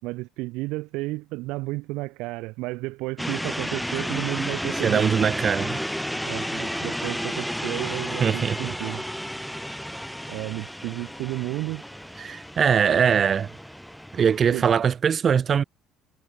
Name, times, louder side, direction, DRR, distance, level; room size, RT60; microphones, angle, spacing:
voice 1, 0.0-5.1 6.2-9.0 10.3-11.8 14.5-14.7, right 22 dB, 75° right, 6.1 m, -32 dB
sound 1, 3.2-14.8, equal, ahead, 4.8 m, -32 dB
voice 2, 4.8-5.8 8.2-8.6 12.2-13.5 14.1-15.6, right 7 dB, 30° right, 1.5 m, -21 dB
cardioid pair, 160°, 0 cm